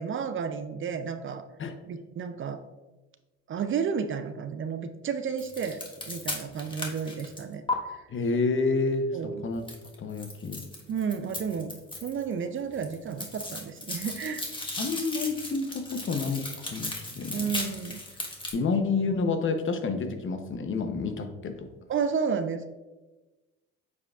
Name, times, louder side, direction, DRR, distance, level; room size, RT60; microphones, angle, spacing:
voice 1, 0.0-1.4 1.9-2.6 3.5-7.6 7.9-8.0 9.1-9.4 10.9-11.7 12.0-14.4 17.3-18.0 21.9-22.7, right 6 dB, 40° right, 9 dB, 0.5 m, -32 dB
sound 1, 5.4-7.7 9.7-12.3 12.6-18.5, left 2 dB, 15° left, 1.3 m, -36 dB
voice 2, 8.1-9.6 10.0-10.6 14.8-17.5 18.5-21.7, left 4 dB, 40° left, 7 dB, 0.9 m, -29 dB
8.2 x 4.8 x 2.4 m, 1.1 s
supercardioid pair, 75°, 30 cm